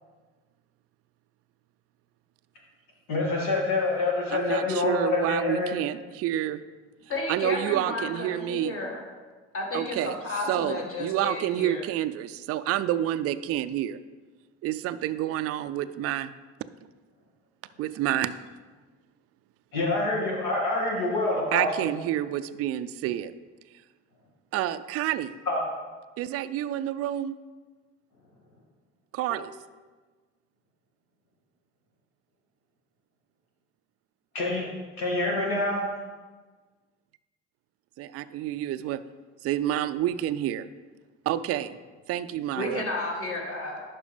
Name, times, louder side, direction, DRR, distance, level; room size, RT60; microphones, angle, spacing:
voice 1, 3.1-5.8 19.7-21.9 25.5-25.6 29.3-29.4 34.3-34.7 35.0-35.9, left 2 dB, 65° left, -2 dB, 2.2 m, -26 dB
voice 2, 4.3-6.6 7.3-8.7 9.7-10.2 10.5-14.0 14.6-16.3 17.8-18.3 21.5-23.3 24.5-25.3 26.2-27.4 29.1-29.5 38.0-39.0 39.4-40.7 41.3-41.8 42.1-42.8, right 12 dB, 40° right, 12 dB, 0.4 m, -28 dB
voice 3, 7.1-9.0 9.5-11.8 42.6-43.8, left 2 dB, 40° left, -1 dB, 2.1 m, -32 dB
11.0 x 4.6 x 3.4 m, 1.3 s
hypercardioid pair, 55°, 36 cm